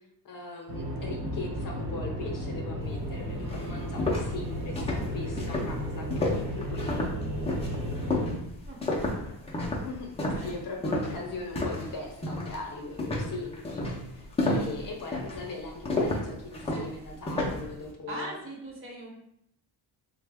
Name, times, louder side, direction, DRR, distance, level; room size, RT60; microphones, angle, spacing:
voice 1, 0.2-4.8 5.1-7.1 9.8-10.1 10.4-18.4, left 2 dB, 45° left, 1 dB, 0.7 m, -39 dB
sound 1, 0.7-8.3, equal, 55° right, 1.0 m, -34 dB
sound 2, 3.0-3.1 3.5-11.9 12.2-12.6 13.0-17.7, left 2 dB, 15° left, 0.4 m, -31 dB
voice 2, 18.1-19.2, right 1 dB, 30° right, -2 dB, 0.7 m, -40 dB
3.2 x 2.1 x 3.4 m, 0.76 s
cardioid pair, 150°, 45 cm